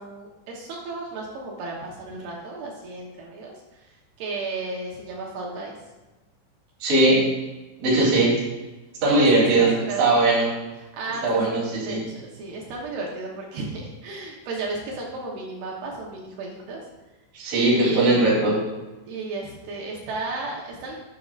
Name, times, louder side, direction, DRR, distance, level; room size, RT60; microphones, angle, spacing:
voice 1, 0.0-5.7 9.1-10.2 10.8-11.4 11.7-16.9 17.8-18.4 19.1-21.0, right 3 dB, 70° right, -2 dB, 2.6 m, -34 dB
voice 2, 6.8-7.3 7.8-8.4 9.0-9.7 10.0-10.5 11.2-12.0 17.3-18.6, right 2 dB, 45° right, -6 dB, 4.4 m, -19 dB
11.5 x 7.5 x 2.5 m, 1.1 s
omnidirectional pair, 5.7 m